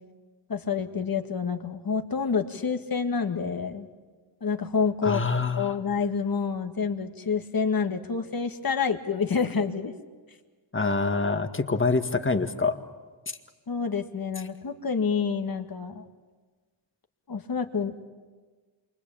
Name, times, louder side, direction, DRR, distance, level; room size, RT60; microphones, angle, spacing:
voice 1, 0.5-3.9 4.4-5.2 5.6-9.9 13.7-16.0 17.3-17.9, left 5 dB, 50° left, 5 dB, 2.0 m, -28 dB
voice 2, 5.0-5.7 10.7-12.8, left 3 dB, 25° left, 7 dB, 1.9 m, -25 dB
28.0 x 24.5 x 8.8 m, 1.4 s
cardioid pair, 80°, 46 cm